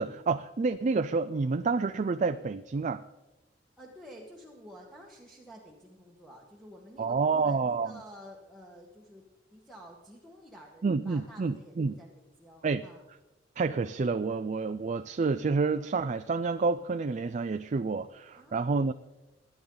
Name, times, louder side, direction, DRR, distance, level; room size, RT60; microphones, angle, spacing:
voice 1, 0.0-3.0 7.0-7.9 10.8-12.0 12.6-12.8 13.6-18.9, right 4 dB, 40° right, 10 dB, 0.4 m, -29 dB
voice 2, 3.8-13.0 18.4-18.9, equal, ahead, -4 dB, 1.5 m, -51 dB
21.0 x 10.0 x 4.0 m, 1.0 s
head